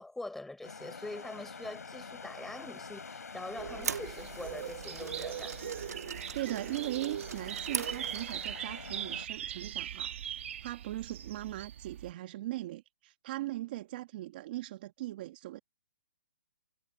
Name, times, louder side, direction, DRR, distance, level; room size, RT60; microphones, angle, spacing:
voice 1, 0.0-5.6, left 2 dB, 5° left, 6.3 m, -44 dB
sound 1, 0.6-9.3, left 5 dB, 85° left, 6.5 m, -47 dB
sound 2, 3.5-8.6, right 6 dB, 85° right, 1.4 m, -42 dB
sound 3, 3.6-12.1, right 9 dB, 50° right, 2.3 m, -40 dB
voice 2, 6.3-10.1 10.6-15.6, right 16 dB, 35° right, 1.4 m, -39 dB
hypercardioid pair, 155°, 8 cm